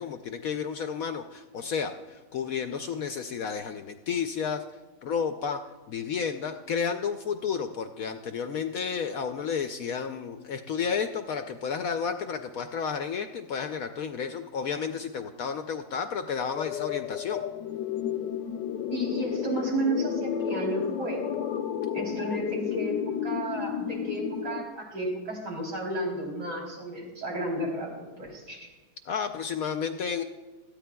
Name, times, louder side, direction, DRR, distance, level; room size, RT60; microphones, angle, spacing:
voice 1, 0.0-4.6 5.0-5.6 5.9-17.4 29.1-30.2, left 6 dB, 70° left, 7 dB, 0.9 m, -31 dB
sound 1, 16.6-24.6, left 9 dB, 90° left, 1.3 m, -32 dB
voice 2, 18.9-21.2 21.9-28.7, right 1 dB, 75° right, -3 dB, 4.0 m, -32 dB
18.0 x 14.0 x 2.3 m, 1.2 s
omnidirectional pair, 1.9 m